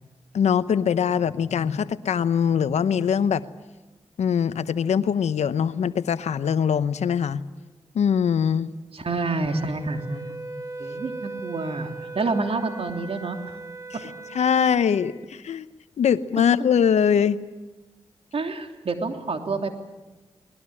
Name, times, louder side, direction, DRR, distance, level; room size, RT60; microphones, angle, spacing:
voice 1, 0.3-3.4 4.2-7.4 7.9-8.7 14.3-15.7 16.0-17.4, left 7 dB, 80° left, 14 dB, 0.9 m, -22 dB
voice 2, 8.9-10.4 10.8-13.4 13.9-14.0 18.3-19.7, right 3 dB, 60° right, 5 dB, 3.2 m, -28 dB
Wind instrument woodwind instrument, 9.4-15.2, right 3 dB, 30° right, 3.3 m, -39 dB
21.0 x 20.5 x 9.9 m, 1.1 s
cardioid pair, 45°, 11 cm